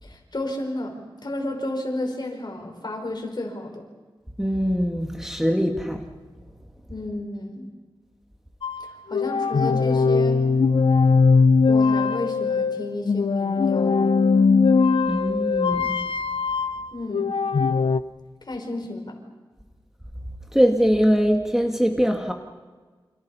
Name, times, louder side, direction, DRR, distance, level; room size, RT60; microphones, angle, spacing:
voice 1, 0.0-3.8 6.9-7.7 8.8-10.4 11.7-14.1 16.9-17.3 18.5-19.2, left 1 dB, 55° left, 3 dB, 5.2 m, -32 dB
voice 2, 4.4-6.0 15.1-16.1 20.5-22.3, equal, 5° right, 3 dB, 2.0 m, -22 dB
sound 1, 8.6-18.0, left 4 dB, 80° left, 0.7 m, -20 dB
29.0 x 27.5 x 5.7 m, 1.4 s
wide cardioid pair, 85°, 9 cm